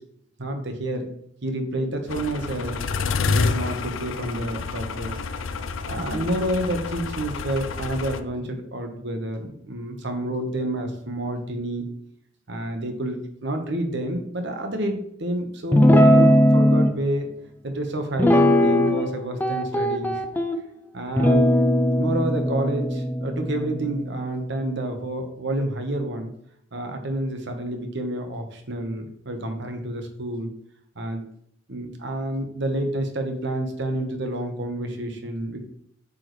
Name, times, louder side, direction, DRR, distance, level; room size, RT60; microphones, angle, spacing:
voice 1, 0.4-1.1 1.4-2.8 3.2-5.1 5.9-11.9 12.5-17.3 17.6-20.2 20.9-21.5 22.0-26.3 26.7-30.5 30.9-31.2 31.7-35.6, right 1 dB, 65° right, 5 dB, 1.1 m, -29 dB
sound 1, 2.1-8.2, left 4 dB, 75° left, 0.5 m, -28 dB
Guitar, 15.7-16.9 18.2-19.1 19.4-20.6 21.2-24.6, equal, 10° left, 0.4 m, -19 dB
8.2 x 5.1 x 3.2 m, 0.71 s
head